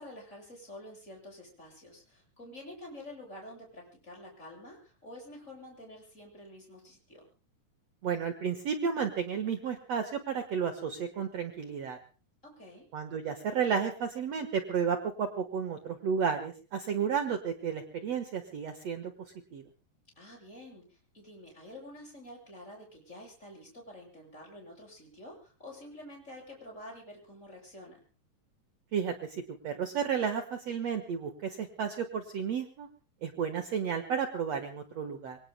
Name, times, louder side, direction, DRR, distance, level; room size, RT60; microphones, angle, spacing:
voice 1, 0.0-7.3 12.4-12.9 20.2-28.0, left 1 dB, 20° left, -1 dB, 8.1 m, -48 dB
voice 2, 8.0-12.0 12.9-19.1 19.5-19.6 28.9-32.9 33.2-35.4, right 7 dB, 55° right, 7 dB, 2.2 m, -32 dB
26.5 x 24.0 x 2.2 m, 0.36 s
omnidirectional pair, 4.0 m